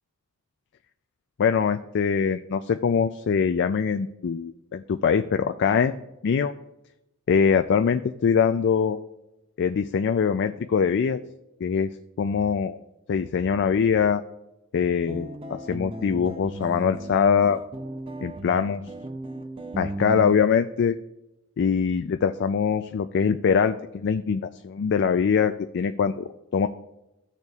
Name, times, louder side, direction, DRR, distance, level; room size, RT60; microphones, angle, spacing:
voice 1, 1.4-6.5 7.3-9.0 9.6-11.2 11.6-11.9 12.2-12.8 13.1-14.2 14.7-17.6 18.2-18.8 19.8-21.0 21.6-26.7, left 6 dB, 50° left, 8 dB, 0.3 m, -23 dB
sound 1, 15.1-20.4, right 1 dB, 25° right, 0.5 m, -36 dB
15.5 x 6.6 x 2.4 m, 0.94 s
head